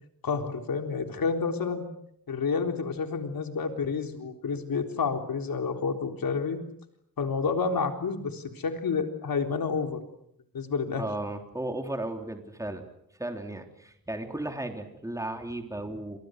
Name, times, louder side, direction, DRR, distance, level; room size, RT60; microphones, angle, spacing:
voice 1, 0.2-1.9 2.3-6.6 7.2-10.0 10.5-11.0, left 5 dB, 75° left, 5 dB, 3.8 m, -29 dB
voice 2, 11.0-12.8 13.2-16.2, right 1 dB, 10° right, 5 dB, 3.5 m, -35 dB
29.5 x 26.5 x 6.6 m, 0.74 s
cardioid pair, 85°, 35 cm